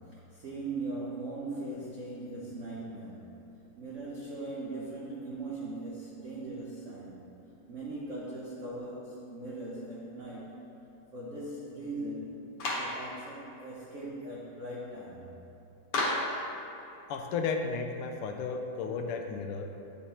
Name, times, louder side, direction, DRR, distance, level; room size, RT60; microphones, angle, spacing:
voice 1, 0.0-3.5 3.8-7.2 7.7-10.6 11.1-12.4 12.7-15.3, right 2 dB, 80° right, -6 dB, 0.6 m, -40 dB
Clapping, 12.6-13.0 15.9-16.4, left 2 dB, 60° left, 1.5 m, -30 dB
voice 2, 17.1-19.7, left 5 dB, 90° left, 4 dB, 1.5 m, -33 dB
9.2 x 4.4 x 2.9 m, 2.8 s
omnidirectional pair, 2.4 m